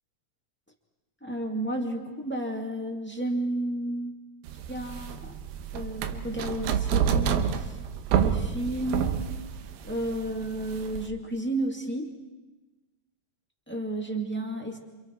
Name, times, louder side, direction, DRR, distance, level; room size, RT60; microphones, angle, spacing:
voice 1, 1.2-4.2 4.7-5.4 5.7-7.8 8.1-9.2 9.8-12.1 13.7-14.8, right 1 dB, 5° left, 1 dB, 1.3 m, -32 dB
sound 1, 4.5-11.1, right 8 dB, 90° right, 2.8 m, -28 dB
28.5 x 27.5 x 4.6 m, 1.2 s
omnidirectional pair, 4.0 m